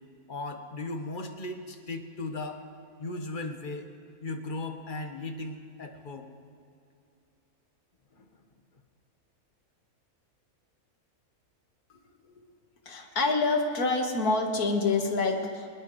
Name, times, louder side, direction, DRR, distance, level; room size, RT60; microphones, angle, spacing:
voice 1, 0.3-2.6 3.0-3.8 4.2-6.3 8.2-8.3, left 2 dB, 35° left, 5 dB, 1.2 m, -37 dB
voice 2, 12.9-15.7, left 3 dB, 85° left, 3 dB, 2.0 m, -27 dB
20.5 x 20.5 x 3.1 m, 2.4 s
omnidirectional pair, 1.5 m